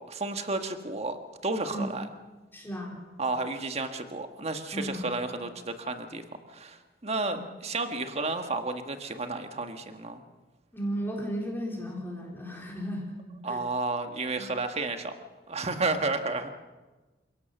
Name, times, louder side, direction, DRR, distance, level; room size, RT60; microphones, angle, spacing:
voice 1, 0.0-2.1 3.2-10.2 13.4-15.1 15.5-16.5, right 3 dB, 35° right, 7 dB, 1.6 m, -32 dB
voice 2, 2.5-3.0 4.7-5.1 7.3-7.4 10.7-13.2 13.5-13.6 14.4-14.5, equal, 10° left, -2 dB, 3.9 m, -34 dB
28.5 x 17.0 x 6.8 m, 1.2 s
head